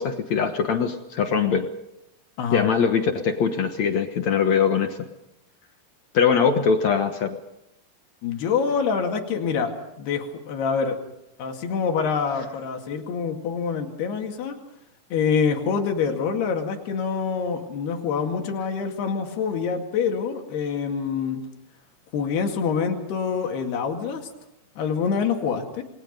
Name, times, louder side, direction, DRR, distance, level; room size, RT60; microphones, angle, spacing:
voice 1, 0.0-1.7 2.5-5.0 6.1-7.4, left 6 dB, 60° left, 6 dB, 2.0 m, -22 dB
voice 2, 8.2-9.7 10.0-11.0 11.4-14.6 15.1-21.4 22.1-24.3 24.8-25.8, left 6 dB, 90° left, 3 dB, 4.3 m, -26 dB
29.0 x 22.0 x 5.3 m, 0.85 s
omnidirectional pair, 4.5 m